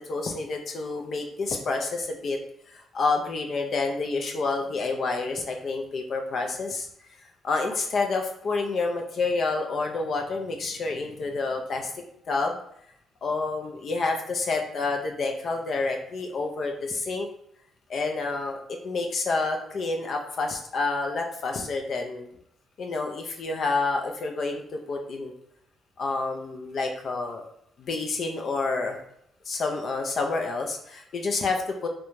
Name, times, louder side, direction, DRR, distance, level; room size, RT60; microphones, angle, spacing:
voice 1, 0.1-2.4 2.7-6.9 7.4-11.9 12.3-12.6 13.2-17.3 17.9-22.3 22.8-25.3 26.0-27.4 27.8-29.0 29.5-31.9, left 3 dB, 55° left, 2 dB, 0.4 m, -28 dB
2.5 x 2.1 x 3.0 m, 0.72 s
cardioid pair, 90°, 0 cm